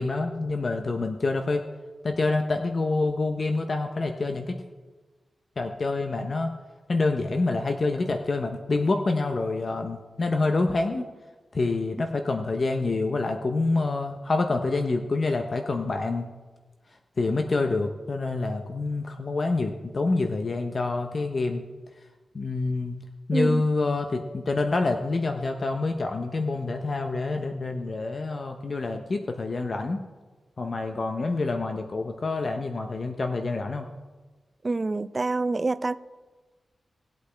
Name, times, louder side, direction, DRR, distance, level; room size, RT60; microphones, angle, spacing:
voice 1, 0.0-1.6 2.0-4.6 5.6-6.5 6.9-11.1 11.5-16.3 17.2-21.6 22.3-23.0 23.3-30.0 30.6-33.9, left 3 dB, 45° left, 5 dB, 0.7 m, -27 dB
voice 2, 34.6-36.0, right 3 dB, 30° right, 14 dB, 0.4 m, -26 dB
19.0 x 8.3 x 3.4 m, 1.3 s
wide cardioid pair, 125°, 0 cm